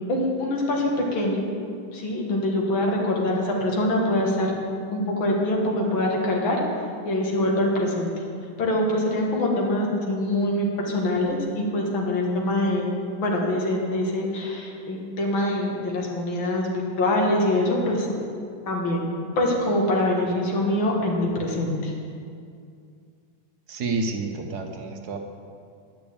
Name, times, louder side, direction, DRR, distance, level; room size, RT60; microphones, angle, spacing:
voice 1, 0.1-1.4 1.9-4.5 4.9-6.6 7.1-8.1 8.6-18.1 18.7-19.1 19.4-21.9, left 1 dB, 85° left, -1 dB, 2.3 m, -24 dB
voice 2, 23.7-25.2, right 3 dB, 60° right, 4 dB, 1.3 m, -29 dB
10.5 x 6.1 x 8.5 m, 2.3 s
omnidirectional pair, 2.1 m